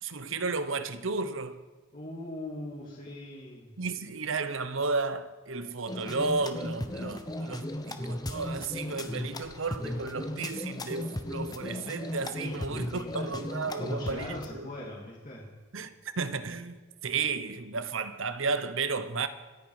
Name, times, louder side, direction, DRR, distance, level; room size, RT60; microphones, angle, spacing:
voice 1, 0.0-1.6 3.8-14.7 15.7-19.3, right 4 dB, 65° right, 1.0 m, -33 dB
voice 2, 1.9-3.7 12.4-13.4 13.7-15.5, left 1 dB, 40° left, 2.4 m, -41 dB
sound 1, 5.9-14.5, left 1 dB, 20° left, 0.9 m, -36 dB
26.5 x 9.3 x 4.9 m
head